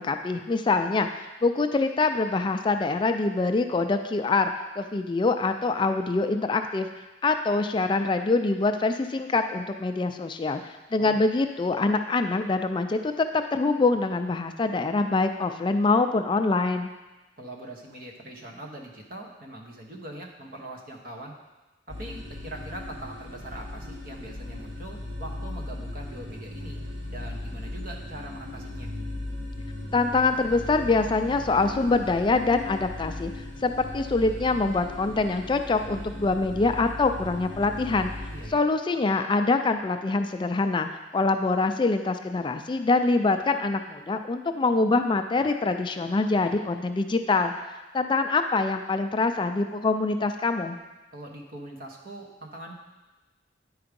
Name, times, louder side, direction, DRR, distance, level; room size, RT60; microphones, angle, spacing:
voice 1, 0.0-6.9 7.2-16.9 29.9-38.1 38.5-40.9 41.1-47.5 47.9-50.8, left 3 dB, 25° left, 7 dB, 0.3 m, -25 dB
voice 2, 17.4-21.3 21.9-26.8 27.1-28.9 38.3-38.6 51.1-52.7, right 1 dB, 50° right, 0 dB, 1.2 m, -42 dB
sound 1, 21.9-38.5, left 1 dB, 70° right, 1.4 m, -37 dB
9.5 x 4.8 x 5.2 m, 1.1 s
head